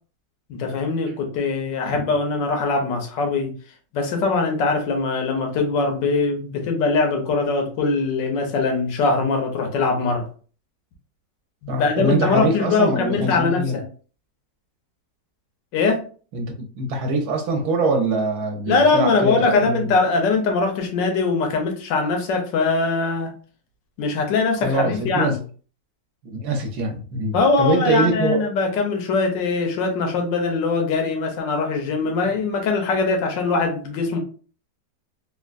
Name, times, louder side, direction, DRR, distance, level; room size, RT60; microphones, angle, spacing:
voice 1, 0.5-3.6 3.9-10.3 11.6-13.8 15.7-16.1 18.7-23.3 24.0-25.4 27.3-34.2, left 4 dB, 90° left, 3 dB, 1.4 m, -22 dB
voice 2, 11.7-13.8 16.3-19.9 24.6-25.4 26.2-28.4, right 2 dB, 65° right, 3 dB, 1.1 m, -23 dB
3.6 x 2.2 x 2.4 m, 0.40 s
omnidirectional pair, 1.9 m